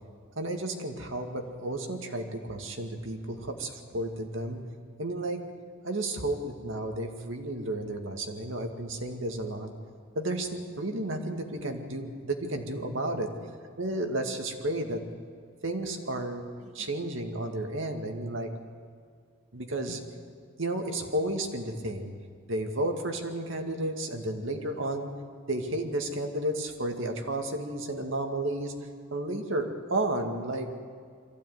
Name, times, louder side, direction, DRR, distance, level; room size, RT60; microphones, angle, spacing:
voice 1, 0.4-4.6 5.0-5.5 5.8-9.7 10.2-13.3 13.8-15.0 15.6-18.5 19.5-20.0 20.6-22.1 22.5-25.1 25.5-28.7 29.1-30.7, right 1 dB, 70° right, 4 dB, 2.2 m, -32 dB
23.0 x 15.5 x 9.4 m, 2.2 s
head